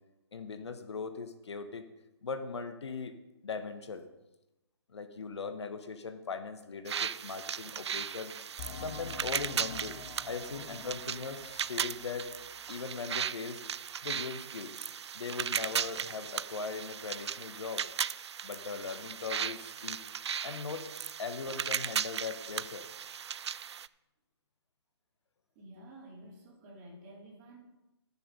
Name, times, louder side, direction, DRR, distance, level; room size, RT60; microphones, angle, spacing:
voice 1, 0.3-1.9 2.2-3.2 3.4-4.0 4.9-8.3 8.8-10.0 10.3-12.3 12.7-13.6 14.0-14.8 15.1-17.8 18.4-20.0 20.4-20.9 21.2-22.9, left 5 dB, 75° left, 8 dB, 1.2 m, -39 dB
sound 1, 6.9-23.9, right 8 dB, 75° right, 0.4 m, -37 dB
sound 2, 8.6-12.9 13.2-13.3 13.8-13.9, left 5 dB, 35° left, 1.2 m, -47 dB
voice 2, 25.6-27.6, right 1 dB, 30° right, -3 dB, 3.8 m, -51 dB
13.5 x 6.8 x 5.3 m, 0.97 s
hypercardioid pair, 140°, 14 cm